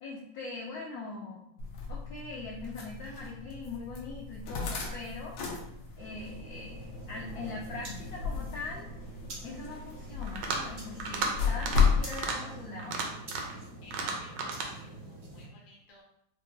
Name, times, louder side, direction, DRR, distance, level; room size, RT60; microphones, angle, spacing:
voice 1, 0.0-1.5 1.9-5.4 6.0-8.9 9.4-13.0, left 3 dB, 75° left, -4 dB, 0.9 m, -41 dB
sound 1, 1.6-12.1, left 6 dB, 90° left, 1.5 m, -34 dB
sound 2, 6.0-15.5, right 2 dB, 55° right, 0.7 m, -46 dB
sound 3, 10.2-10.7 11.0-11.3 11.6-11.9 12.1-12.4 12.8-13.6 13.9-14.7, right 4 dB, 75° right, 1.2 m, -33 dB
voice 2, 13.8-16.0, equal, 55° left, -3 dB, 0.5 m, -55 dB
4.7 x 2.2 x 2.6 m, 0.76 s
omnidirectional pair, 2.1 m